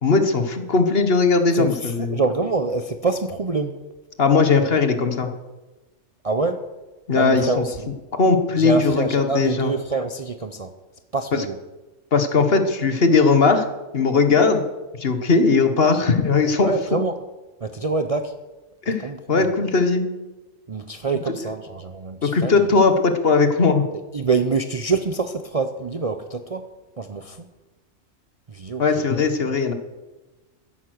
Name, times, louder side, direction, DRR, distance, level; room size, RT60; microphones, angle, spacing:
voice 1, 0.0-2.2 4.2-5.3 7.1-7.6 8.1-9.7 11.3-11.4 12.1-13.7 13.9-14.6 15.0-17.0 18.8-20.1 22.2-23.8 28.8-29.7, left 4 dB, 50° left, 7 dB, 1.4 m, -19 dB
voice 2, 1.5-3.7 6.2-6.6 7.2-7.8 8.6-10.7 11.1-11.6 16.6-17.2 17.6-18.3 19.0-19.4 20.7-22.7 24.1-26.7 27.0-27.5 28.5-29.1, right 4 dB, 35° right, 7 dB, 0.6 m, -25 dB
13.5 x 10.5 x 6.4 m, 1.1 s
omnidirectional pair, 1.4 m